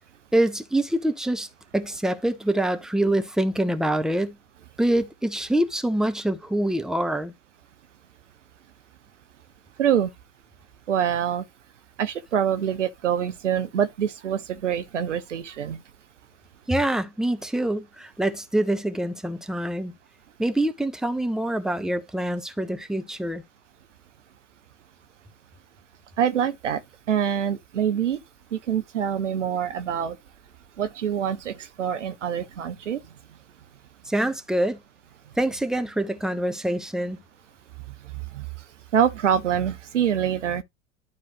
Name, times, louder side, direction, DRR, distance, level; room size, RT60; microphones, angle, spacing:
voice 1, 0.3-1.5 1.7-4.3 4.8-7.3 16.7-19.9 20.4-23.4 34.1-34.8 35.4-37.2, right 1 dB, ahead, 1.1 m, -25 dB
voice 2, 9.8-10.1 10.9-11.4 12.0-15.8 26.2-26.8 27.1-28.2 28.5-30.2 30.8-33.0 35.3-35.4 37.9-38.6 38.9-40.6, right 9 dB, 85° right, 0.9 m, -25 dB
12.0 x 4.7 x 2.7 m
hypercardioid pair, 75°, 35 cm